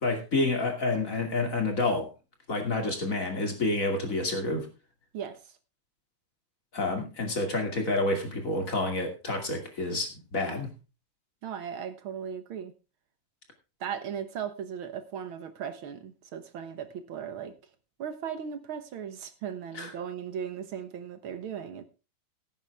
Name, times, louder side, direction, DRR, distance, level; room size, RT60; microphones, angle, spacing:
voice 1, 0.0-2.1 2.5-4.7 6.7-10.7 19.7-19.9, left 2 dB, 35° left, 2.9 m, -29 dB
voice 2, 5.1-5.6 11.4-12.7 13.8-17.5 18.0-21.8, right 8 dB, 70° right, 2.0 m, -37 dB
16.5 x 9.0 x 3.5 m
omnidirectional pair, 2.4 m